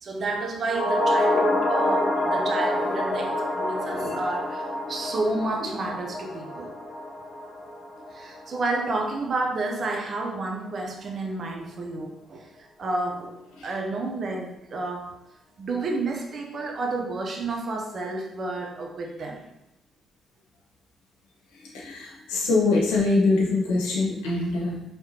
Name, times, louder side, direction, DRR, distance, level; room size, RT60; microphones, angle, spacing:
voice 1, 0.0-6.7 8.1-15.2 15.6-19.5, right 2 dB, 50° right, 1 dB, 0.8 m, -30 dB
sound 1, 0.7-9.1 9.4-9.5, left 1 dB, 45° left, 0.6 m, -27 dB
voice 2, 21.6-24.8, left 3 dB, 75° left, -4 dB, 0.9 m, -24 dB
4.8 x 3.2 x 2.8 m, 0.82 s
figure-of-eight pair, 40°, 0 cm